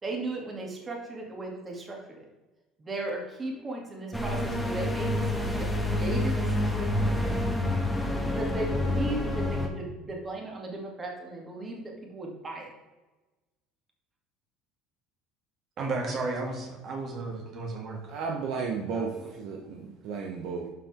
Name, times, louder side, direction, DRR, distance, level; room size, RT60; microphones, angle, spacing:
voice 1, 0.0-2.3 2.8-7.4 8.3-12.7 16.0-16.3 18.9-19.7, right 2 dB, 25° right, 0 dB, 2.6 m, -37 dB
sound 1, 4.1-9.7, left 1 dB, 5° left, 1.6 m, -28 dB
voice 2, 15.8-18.1, right 3 dB, 50° right, 1 dB, 2.7 m, -33 dB
voice 3, 18.1-19.1 19.4-20.7, right 5 dB, 65° right, 1 dB, 1.3 m, -33 dB
11.0 x 6.1 x 3.7 m, 1.2 s
supercardioid pair, 100°, 0 cm